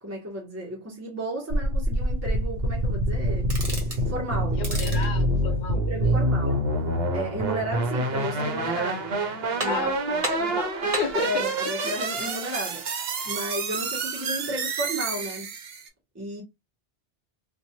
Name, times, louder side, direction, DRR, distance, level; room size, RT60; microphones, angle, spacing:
voice 1, 0.0-3.5 4.0-4.6 5.9-6.6 7.1-9.1 9.6-10.2 11.1-15.5 16.1-16.4, right 1 dB, 15° right, 0.8 m, -33 dB
sound 1, 1.5-15.9, right 1 dB, 65° right, 0.9 m, -27 dB
sound 2, 3.4-4.1 4.5-5.1 8.1-8.7 9.1-9.2 9.6-10.0 10.2-11.2, right 2 dB, 35° right, 1.0 m, -33 dB
voice 2, 4.6-6.2 9.7-11.5 11.8-12.0, left 6 dB, 55° left, 0.7 m, -33 dB
2.9 x 2.3 x 2.7 m
omnidirectional pair, 1.2 m